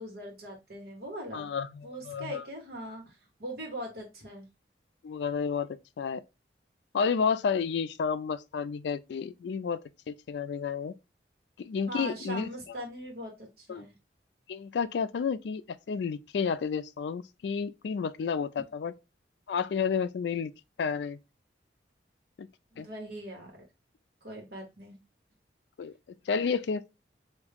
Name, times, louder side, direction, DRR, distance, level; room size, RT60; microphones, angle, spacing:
voice 1, 0.0-1.6 1.8-4.5 11.9-13.9 22.7-23.5 24.2-25.0, right 1 dB, 60° right, 1.5 m, -41 dB
voice 2, 1.3-2.4 5.0-5.7 6.0-6.2 6.9-9.8 10.1-10.9 11.6-12.5 13.7-13.8 14.5-15.6 15.9-18.9 19.5-20.5 20.8-21.2 22.4-22.5 22.8-22.9 25.8-25.9 26.3-26.8, left 6 dB, 75° left, 0.3 m, -31 dB
3.5 x 2.6 x 3.5 m
head